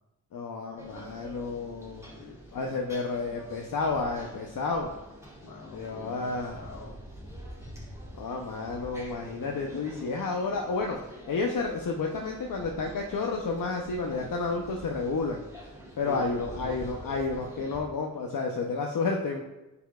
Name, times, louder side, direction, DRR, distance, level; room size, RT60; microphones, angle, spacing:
voice 1, 0.3-2.1 2.5-4.9 5.7-6.6 8.2-11.0 11.3-15.4 16.0-19.4, left 4 dB, 85° left, 0 dB, 0.7 m, -31 dB
sound 1, 0.8-17.8, equal, 10° right, 2.4 m, -46 dB
voice 2, 2.0-2.8 5.4-7.0 16.0-16.9, left 2 dB, 65° left, -1 dB, 1.6 m, -44 dB
9.2 x 6.9 x 2.3 m, 1.0 s
cardioid pair, 50°, 33 cm